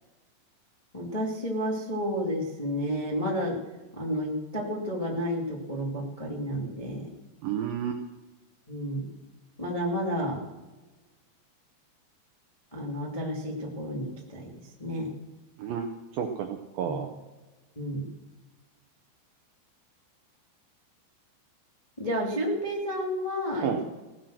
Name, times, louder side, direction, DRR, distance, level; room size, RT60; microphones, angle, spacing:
voice 1, 0.9-3.6 3.9-7.1 8.7-9.1 9.6-10.4 12.7-14.5 14.8-15.1 16.8-17.0 17.7-18.1 22.0-23.8, equal, 85° left, -2 dB, 0.3 m, -31 dB
voice 2, 7.4-8.0 15.6-17.1 23.6-23.8, right 8 dB, 80° right, 4 dB, 2.1 m, -31 dB
18.0 x 10.0 x 6.5 m, 1.2 s
omnidirectional pair, 5.4 m